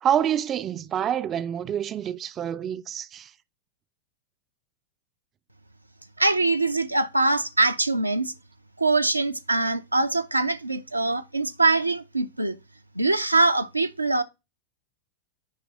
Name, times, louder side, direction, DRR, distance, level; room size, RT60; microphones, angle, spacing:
voice 1, 0.0-3.3, right 9 dB, 25° right, 0.4 m, -27 dB
voice 2, 6.2-8.3 8.8-12.6 13.0-14.2, right 2 dB, 85° right, 0.5 m, -23 dB
9.7 x 3.3 x 3.7 m
figure-of-eight pair, 90°, 0 cm